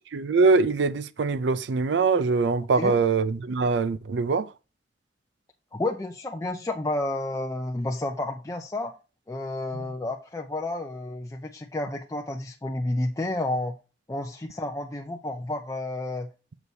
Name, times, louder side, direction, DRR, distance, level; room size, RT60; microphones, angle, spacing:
voice 1, 0.1-4.5 9.7-9.9, right 4 dB, 75° right, 0.4 m, -23 dB
voice 2, 5.7-8.9 9.3-13.7 14.1-16.3, left 2 dB, 15° left, 0.5 m, -30 dB
7.0 x 6.2 x 2.7 m
head